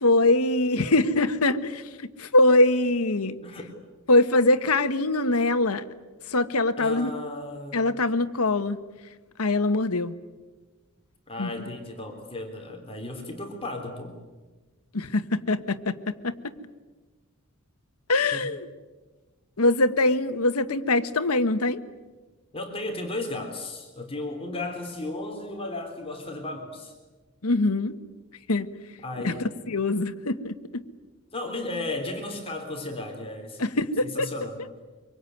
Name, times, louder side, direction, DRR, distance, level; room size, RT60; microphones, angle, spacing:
voice 1, 0.0-1.8 2.2-3.4 4.1-5.8 6.3-7.1 7.7-8.8 9.4-10.1 11.4-11.5 14.9-16.5 18.1-18.7 19.6-21.8 27.4-28.0 28.5-28.7 29.2-30.8 33.6-34.3, left 2 dB, 85° left, 10 dB, 1.4 m, -23 dB
voice 2, 3.4-3.7 6.8-8.0 11.3-14.2 18.3-18.5 22.5-26.9 29.0-29.4 31.3-33.7 34.0-34.6, left 2 dB, 25° left, 2 dB, 3.4 m, -34 dB
25.0 x 24.0 x 9.3 m, 1.3 s
head